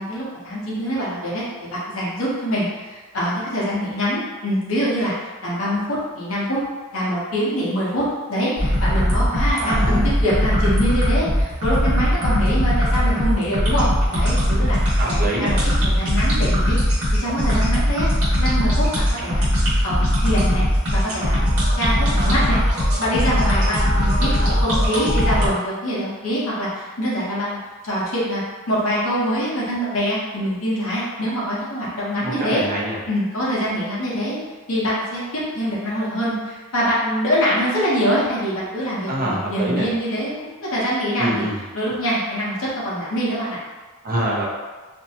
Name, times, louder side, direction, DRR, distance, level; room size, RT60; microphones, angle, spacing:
voice 1, 0.0-5.1 5.4-6.6 6.9-15.6 15.8-18.1 18.4-19.4 19.8-20.6 20.9-21.4 21.7-22.6 23.0-27.6 27.8-28.4 28.7-32.6 33.1-34.4 34.7-41.4 41.7-43.6, equal, 65° left, -7 dB, 0.8 m, -24 dB
sound 1, 8.6-25.5, equal, 70° right, 1.0 m, -19 dB
voice 2, 9.6-10.1 15.0-15.5 32.2-33.0 39.1-39.9 41.2-41.6 44.0-44.5, right 1 dB, 40° right, -5 dB, 0.5 m, -25 dB
2.6 x 2.1 x 2.7 m, 1.3 s
head